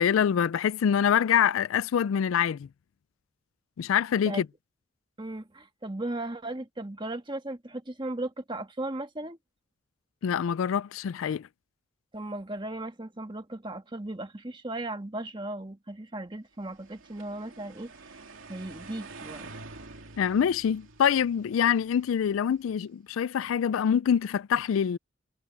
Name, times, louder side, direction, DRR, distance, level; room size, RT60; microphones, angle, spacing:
voice 1, 0.0-2.7 3.8-4.5 10.2-11.5 20.2-25.0, left 8 dB, 85° left, 0.3 m, -25 dB
voice 2, 5.2-9.4 12.1-18.2 18.5-19.5, right 1 dB, 25° right, 1.6 m, -36 dB
sound 1, 16.6-22.8, right 3 dB, 80° right, 2.6 m, -48 dB
head